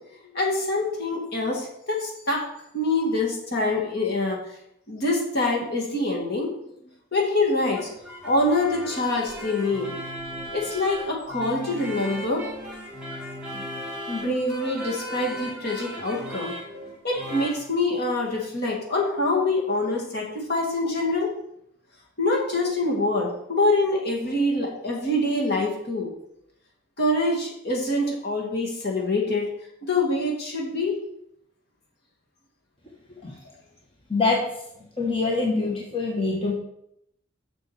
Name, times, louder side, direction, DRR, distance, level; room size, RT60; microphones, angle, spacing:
voice 1, 0.3-2.4 2.7-4.4 4.9-6.5 7.1-7.9 8.2-10.0 10.5-12.4 13.5-13.6 14.1-16.5 17.0-21.3 22.2-26.1 27.0-29.5 29.8-31.0, left 2 dB, 60° left, -1 dB, 2.1 m, -25 dB
sound 1, 7.7-17.6, equal, 5° right, 1.9 m, -37 dB
voice 2, 34.1-34.4 35.0-36.5, left 3 dB, 30° left, -2 dB, 1.3 m, -24 dB
7.2 x 6.3 x 4.9 m, 0.76 s
head